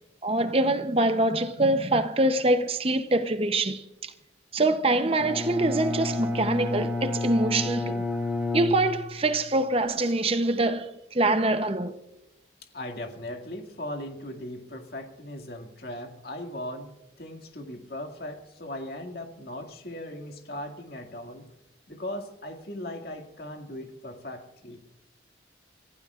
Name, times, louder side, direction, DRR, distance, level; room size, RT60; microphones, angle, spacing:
voice 1, 0.2-4.1 4.5-8.0 8.5-11.9, right 2 dB, 30° right, 0.7 m, -24 dB
Bowed string instrument, 5.2-9.4, left 2 dB, 10° right, 2.0 m, -30 dB
voice 2, 12.7-21.4 21.9-24.8, left 1 dB, 55° left, 2.1 m, -38 dB
28.0 x 15.5 x 2.5 m
head